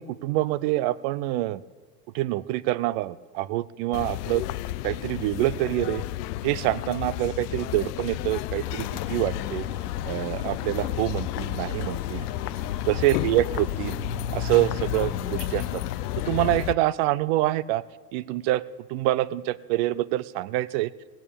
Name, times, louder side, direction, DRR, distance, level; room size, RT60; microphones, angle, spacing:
voice 1, 0.0-1.6 2.1-4.4 4.8-6.0 6.4-9.7 10.0-12.2 12.9-14.0 14.3-15.8 16.3-17.8 18.1-18.6 18.9-20.9, right 16 dB, 45° right, 19 dB, 0.5 m, -26 dB
sound 1, 3.9-16.7, left 15 dB, 70° left, 0.7 m, -32 dB
sound 2, 8.6-16.5, left 6 dB, 85° left, 1.5 m, -37 dB
17.5 x 9.1 x 8.6 m, 1.4 s
supercardioid pair, 140°, 49 cm